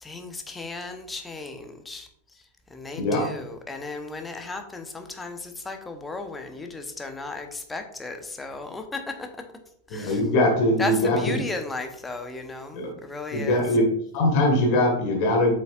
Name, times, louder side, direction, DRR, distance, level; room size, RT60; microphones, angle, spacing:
voice 1, 0.0-2.1 2.7-9.3 9.9-10.2 10.8-13.6, left 3 dB, 10° left, 6 dB, 0.9 m, -35 dB
voice 2, 3.0-3.3 9.9-11.4 12.7-12.9 13.3-13.9 14.1-15.5, left 1 dB, 45° left, 1 dB, 1.7 m, -22 dB
7.6 x 5.4 x 2.5 m, 0.68 s
figure-of-eight pair, 90°, 0 cm